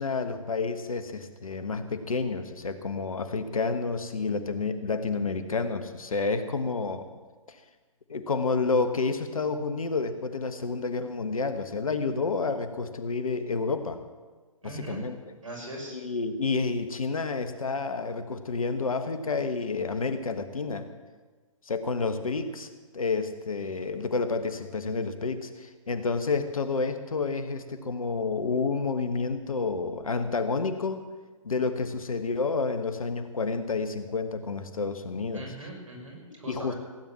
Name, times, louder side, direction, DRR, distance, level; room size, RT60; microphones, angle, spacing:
voice 1, 0.0-7.1 7.5-7.6 8.1-14.0 14.6-15.2 15.9-20.9 21.7-31.1 31.4-35.5 36.5-36.7, left 4 dB, 75° left, 9 dB, 1.4 m, -29 dB
voice 2, 14.6-15.0 15.4-16.0 35.3-36.8, right 1 dB, 70° right, 0 dB, 5.9 m, -40 dB
16.0 x 9.2 x 7.4 m, 1.4 s
figure-of-eight pair, 130°, 18 cm